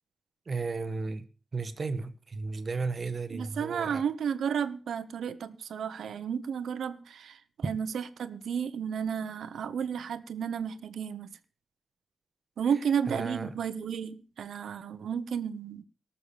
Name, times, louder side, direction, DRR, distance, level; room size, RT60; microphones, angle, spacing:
voice 1, 0.5-4.0 13.1-13.6, right 4 dB, 35° right, 1.3 m, -34 dB
voice 2, 3.3-11.3 12.6-15.8, right 7 dB, 85° right, 1.0 m, -32 dB
18.5 x 7.2 x 6.9 m
wide cardioid pair, 160°, 0 cm